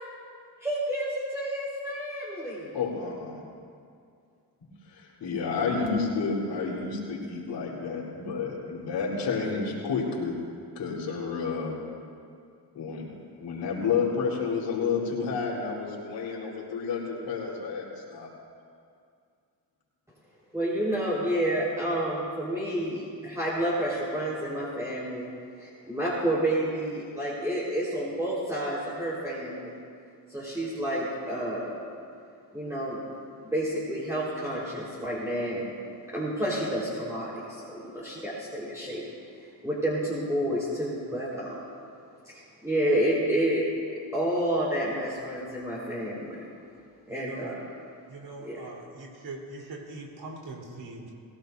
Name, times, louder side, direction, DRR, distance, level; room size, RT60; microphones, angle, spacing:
voice 1, 0.6-2.8 20.5-25.3 25.6-29.8 30.3-31.8 32.5-33.0 33.4-35.7 36.1-39.0 39.6-41.6 42.3-43.6 43.9-46.4 47.1-47.6 48.4-48.6, right 1 dB, 5° right, -9 dB, 4.3 m, -29 dB
voice 2, 2.7-3.4 4.9-10.3 10.7-11.7 12.7-13.1 13.4-18.3, left 5 dB, 90° left, -5 dB, 4.2 m, -30 dB
voice 3, 47.1-47.5 48.1-51.1, right 2 dB, 65° right, -2 dB, 3.9 m, -42 dB
22.0 x 17.0 x 2.7 m, 2.3 s
cardioid pair, 85°, 41 cm